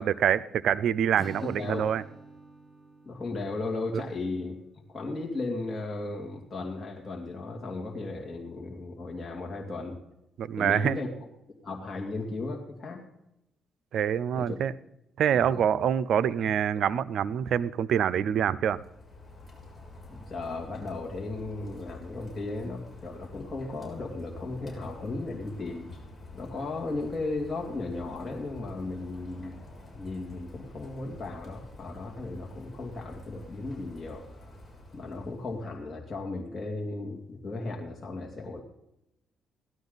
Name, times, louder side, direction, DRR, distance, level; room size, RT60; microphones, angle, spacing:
voice 1, 0.0-2.0 3.9-4.0 10.4-11.0 13.9-14.7 15.2-18.8, right 9 dB, 70° right, 17 dB, 0.5 m, -26 dB
Acoustic guitar / Strum, 1.2-4.4, right 2 dB, 30° right, 1.3 m, -48 dB
voice 2, 3.0-4.6 4.9-10.0 10.6-11.1 11.6-13.1 14.3-14.6 15.3-15.6 20.3-25.9 26.3-29.6 29.9-34.3 34.9-38.6, left 3 dB, 35° left, -1 dB, 2.5 m, -35 dB
Rain, 18.6-35.8, left 1 dB, 20° left, 7.0 m, -48 dB
17.5 x 12.5 x 4.0 m, 0.86 s
cardioid pair, 90°, 0 cm